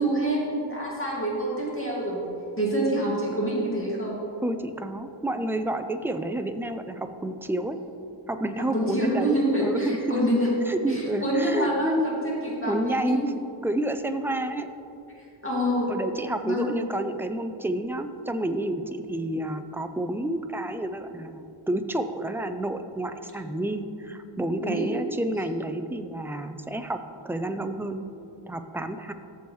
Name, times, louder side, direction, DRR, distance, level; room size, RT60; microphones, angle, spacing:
voice 1, 0.0-2.3 2.6-4.2 8.7-10.5 10.9-13.2 15.2-15.9 16.4-16.8 24.6-24.8, right 1 dB, 25° left, -5 dB, 2.1 m, -26 dB
voice 2, 4.4-7.8 8.3-10.2 10.7-12.1 12.6-13.3 13.6-14.7 15.9-28.0 28.5-29.1, right 1 dB, 5° right, 8 dB, 0.3 m, -29 dB
14.5 x 7.0 x 3.1 m, 2.7 s
wide cardioid pair, 90°, 49 cm